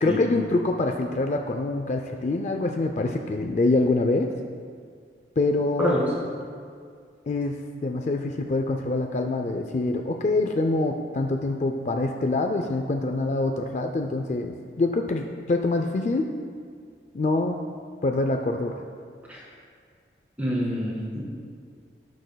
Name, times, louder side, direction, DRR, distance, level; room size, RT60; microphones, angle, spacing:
voice 1, 0.0-4.3 5.4-6.0 7.3-16.3 17.1-17.6 18.0-18.8, left 2 dB, 40° left, 4 dB, 0.4 m, -25 dB
voice 2, 20.4-21.2, equal, 10° right, -6 dB, 2.0 m, -26 dB
17.0 x 6.3 x 2.2 m, 2.1 s
head